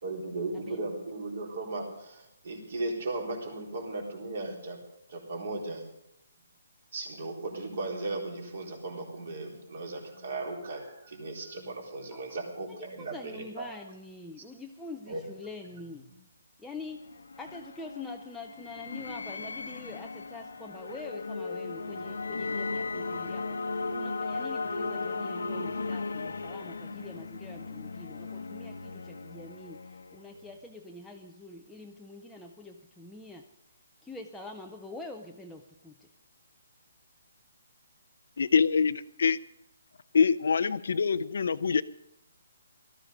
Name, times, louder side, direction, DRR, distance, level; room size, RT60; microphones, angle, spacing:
voice 1, 0.0-4.8 5.1-5.8 6.9-13.7 15.1-15.2 16.1-16.2, right 2 dB, 45° right, 1 dB, 3.9 m, -36 dB
voice 2, 0.5-0.9 12.1-12.2 12.7-16.1 16.6-17.0 17.4-23.6 23.9-33.4 34.0-36.1, left 2 dB, ahead, 1 dB, 0.5 m, -45 dB
sound 1, 16.8-30.5, left 3 dB, 85° left, 1.0 m, -36 dB
voice 3, 38.4-39.4 40.1-41.8, left 5 dB, 55° left, 14 dB, 0.5 m, -25 dB
18.0 x 13.5 x 5.2 m, 0.78 s
hypercardioid pair, 180°, 0 cm